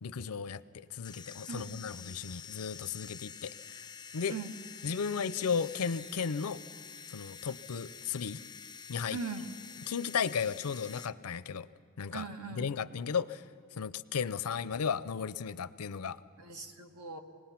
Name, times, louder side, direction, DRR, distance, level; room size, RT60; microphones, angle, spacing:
voice 1, 0.0-3.8 4.1-4.4 4.8-6.6 7.1-8.4 8.9-9.2 9.9-11.7 12.0-12.3 12.6-13.4 13.7-16.2, left 6 dB, 85° left, 16 dB, 0.6 m, -35 dB
sound 1, 1.0-11.1, left 7 dB, 20° left, 0.4 m, -48 dB
voice 2, 1.5-1.8 4.3-4.5 9.1-9.6 12.1-12.8 16.4-17.2, right 4 dB, 85° right, 5 dB, 1.6 m, -40 dB
26.0 x 20.0 x 5.9 m, 2.5 s
head